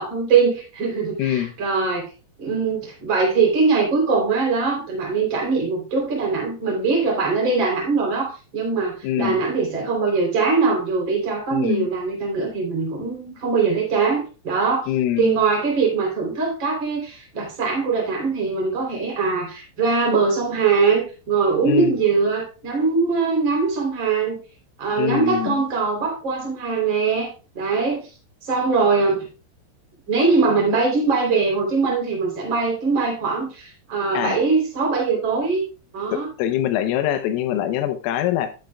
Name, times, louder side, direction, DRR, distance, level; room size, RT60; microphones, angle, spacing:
voice 1, 0.0-2.1 2.4-14.9 15.2-24.4 24.8-28.1 28.4-29.3 30.1-35.7 35.9-36.3, right 4 dB, 25° right, -1 dB, 3.3 m, -22 dB
voice 2, 1.2-1.5 9.0-9.4 11.5-11.9 14.9-15.4 21.7-22.0 25.0-25.6 34.2-34.4 36.1-38.5, left 11 dB, 85° left, 8 dB, 3.5 m, -23 dB
12.0 x 9.1 x 2.3 m, 0.32 s
omnidirectional pair, 5.8 m